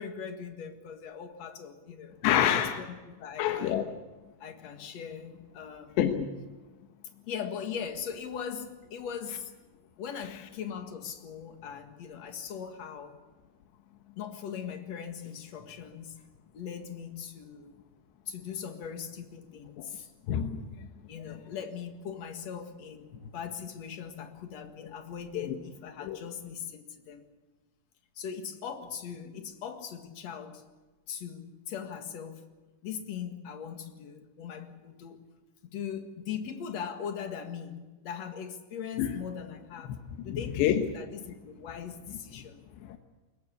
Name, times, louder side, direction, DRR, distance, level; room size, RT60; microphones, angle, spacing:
voice 1, 0.0-2.9 3.2-3.8 4.4-6.0 7.3-9.5 10.0-13.2 14.2-16.2 16.5-17.8 18.3-20.1 21.1-27.2 28.2-30.7 31.1-32.5 32.8-35.3 35.7-42.6, left 7 dB, 50° left, 2.2 m, -40 dB
voice 2, 2.2-2.8 3.4-3.8 6.0-6.3 19.8-19.9 20.3-20.9 24.8-24.9 25.3-25.6 26.0-26.2 39.0-39.2 40.2-40.8 42.8-43.0, left 10 dB, 75° left, 3.3 m, -28 dB
22.0 x 19.5 x 8.4 m
omnidirectional pair, 5.3 m